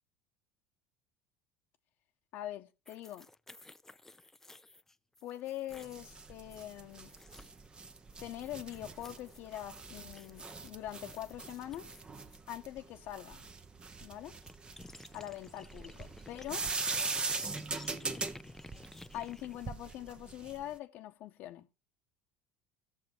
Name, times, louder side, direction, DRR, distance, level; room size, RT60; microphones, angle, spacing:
voice 1, 2.3-3.3 5.2-7.1 8.2-11.9 12.5-13.4 14.0-14.3 15.1-16.6 19.1-21.7, left 13 dB, 60° left, 1.1 m, -43 dB
sound 1, 2.8-7.7 8.1-12.4 13.9-14.0 14.2-20.2, left 2 dB, 10° left, 0.6 m, -54 dB
sound 2, 5.7-20.7, right 4 dB, 25° right, 1.1 m, -41 dB
16.5 x 6.8 x 4.5 m
supercardioid pair, 90°, 4 cm